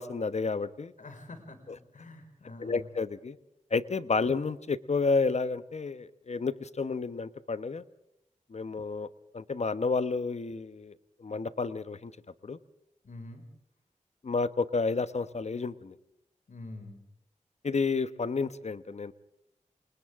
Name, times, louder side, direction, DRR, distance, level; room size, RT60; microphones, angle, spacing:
voice 1, 0.0-0.9 2.6-3.4 3.7-7.8 8.5-12.1 12.4-12.6 14.2-16.0 17.6-19.1, left 4 dB, 60° left, 14 dB, 1.1 m, -31 dB
voice 2, 1.0-2.9 13.0-13.4 16.5-17.0, left 2 dB, 75° left, 6 dB, 5.3 m, -46 dB
29.0 x 27.0 x 3.7 m, 0.79 s
wide cardioid pair, 75°, 13 cm